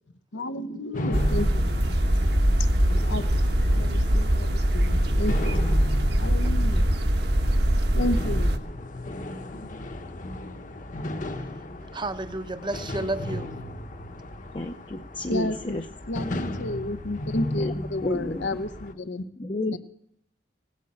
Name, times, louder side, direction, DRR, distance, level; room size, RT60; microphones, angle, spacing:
voice 1, 0.3-1.9 3.1-3.4 3.7-5.8 6.2-6.8 7.9-8.7 15.3-15.8 16.1-19.2 19.7-19.8, left 1 dB, 80° left, 12 dB, 0.8 m, -32 dB
sound 1, 0.9-18.9, left 1 dB, 45° left, 1.0 m, -36 dB
sound 2, 1.1-8.6, equal, 60° right, 1.3 m, -22 dB
voice 2, 11.9-13.6, right 2 dB, 25° right, 12 dB, 0.8 m, -31 dB
voice 3, 14.5-15.8 17.6-18.6 19.4-19.8, left 2 dB, 30° left, 5 dB, 0.6 m, -31 dB
17.5 x 8.3 x 8.6 m, 0.71 s
head